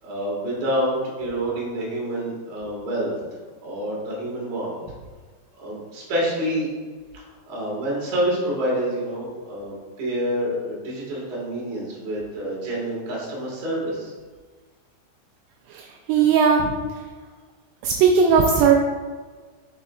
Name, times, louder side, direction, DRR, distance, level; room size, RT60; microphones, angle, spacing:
voice 1, 0.0-3.1 3.6-4.7 5.6-6.7 7.1-14.1, equal, 55° right, -5 dB, 2.1 m, -27 dB
voice 2, 15.7-16.8 17.8-18.8, right 6 dB, 90° right, 1 dB, 2.4 m, -18 dB
6.7 x 6.5 x 2.4 m, 1.4 s
omnidirectional pair, 5.4 m